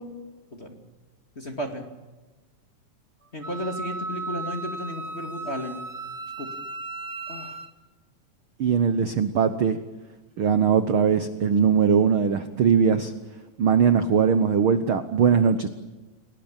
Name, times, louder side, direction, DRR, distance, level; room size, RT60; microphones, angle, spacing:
voice 1, 1.4-1.9 3.3-5.8 6.4-6.5 7.3-7.6, left 1 dB, 20° left, 4 dB, 2.1 m, -33 dB
Wind instrument woodwind instrument, 3.4-7.7, right 3 dB, 40° right, 1.0 m, -35 dB
voice 2, 8.6-9.8 10.4-13.1 13.6-15.7, right 7 dB, 70° right, 10 dB, 1.2 m, -20 dB
29.5 x 19.0 x 8.9 m, 1.2 s
omnidirectional pair, 3.9 m